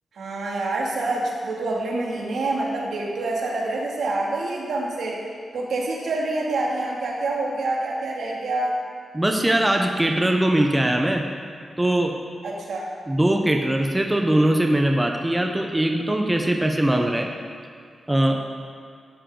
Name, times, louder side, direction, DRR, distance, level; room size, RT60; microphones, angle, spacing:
voice 1, 0.1-5.2 5.5-8.7 12.4-12.9, right 2 dB, 90° right, -3 dB, 2.4 m, -26 dB
voice 2, 9.1-11.3 11.8-12.2 13.1-17.3 18.1-18.4, right 1 dB, 10° right, 2 dB, 0.8 m, -21 dB
12.5 x 11.5 x 3.9 m, 2.2 s
wide cardioid pair, 150°, 0 cm